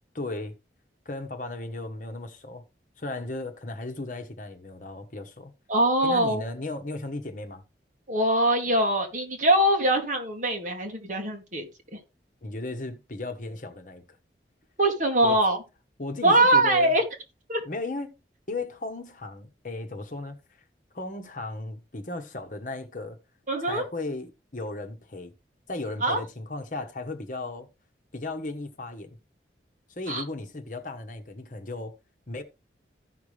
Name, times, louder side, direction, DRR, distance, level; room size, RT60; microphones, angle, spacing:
voice 1, 0.1-0.5 1.0-2.6 3.0-5.5 6.0-7.6 12.4-14.0 15.2-15.4 16.0-17.0 17.6-18.2 18.5-20.4 20.9-23.2 23.7-25.3 25.7-27.7 28.1-29.2 30.0-31.9 32.3-32.4, left 2 dB, 45° left, 1.3 m, -35 dB
voice 2, 5.7-6.4 8.1-11.7 14.8-15.6 16.2-17.0 17.5-17.6 23.5-23.8 26.0-26.2 30.1-30.2, right 1 dB, 45° right, 2.2 m, -22 dB
15.0 x 5.9 x 3.3 m
head